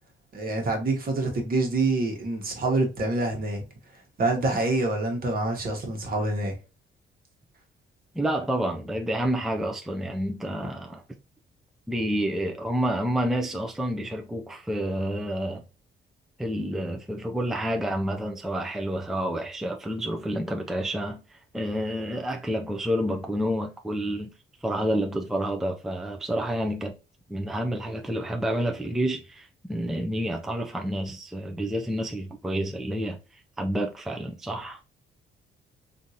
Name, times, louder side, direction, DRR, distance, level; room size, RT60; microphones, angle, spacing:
voice 1, 0.3-3.6 4.2-6.5, right 2 dB, 45° right, 1.3 m, -26 dB
voice 2, 8.1-11.0 11.9-15.6 16.4-24.3 24.6-27.0 27.3-34.8, equal, ahead, 0.4 m, -29 dB
3.6 x 2.6 x 2.7 m
cardioid pair, 90°, 20 cm